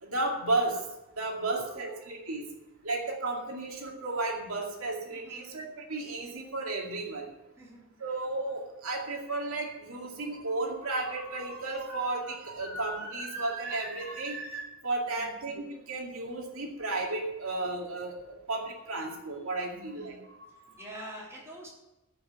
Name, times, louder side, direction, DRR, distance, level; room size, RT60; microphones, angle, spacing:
voice 1, 0.0-0.8 1.2-2.4 2.8-7.3 8.0-20.7, right 2 dB, 75° right, 0 dB, 2.3 m, -33 dB
voice 2, 1.5-2.0 5.1-5.5 7.6-7.8 15.2-15.3 19.7-20.3 20.5-21.7, equal, 15° right, -5 dB, 3.8 m, -47 dB
16.0 x 5.7 x 7.9 m, 0.99 s
head